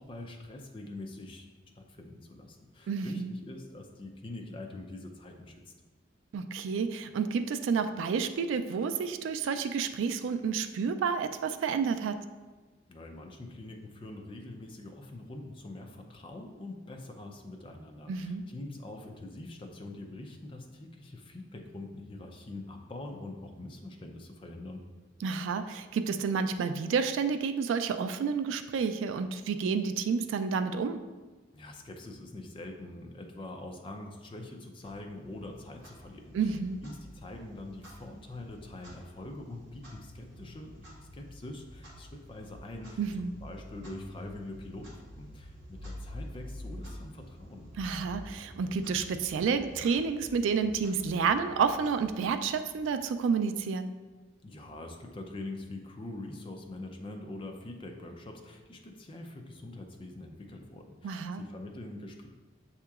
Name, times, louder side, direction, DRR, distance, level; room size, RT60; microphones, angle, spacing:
voice 1, 0.0-1.5 1.8-5.7 12.9-24.8 31.5-36.6 36.8-40.8 41.1-47.7 54.4-62.3, left 2 dB, 25° left, 3 dB, 0.4 m, -44 dB
voice 2, 2.9-3.3 6.3-12.2 18.1-18.4 25.2-31.0 36.3-36.8 43.0-43.3 47.8-53.9 61.0-61.4, right 5 dB, 80° right, 9 dB, 0.3 m, -30 dB
Clock, 34.8-53.5, equal, 60° right, 1.2 m, -49 dB
7.4 x 2.8 x 2.3 m, 1.3 s
head